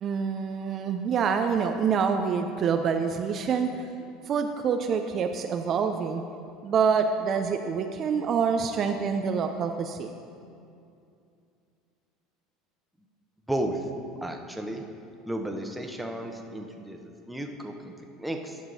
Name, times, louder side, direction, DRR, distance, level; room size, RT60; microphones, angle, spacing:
voice 1, 0.0-3.8 4.3-6.2 6.6-10.1, right 6 dB, 45° right, 6 dB, 0.4 m, -26 dB
voice 2, 13.5-13.8 14.2-14.8 15.3-18.6, right 1 dB, 5° right, 3 dB, 0.9 m, -33 dB
10.5 x 6.2 x 4.1 m, 2.5 s
hypercardioid pair, 80°, 0 cm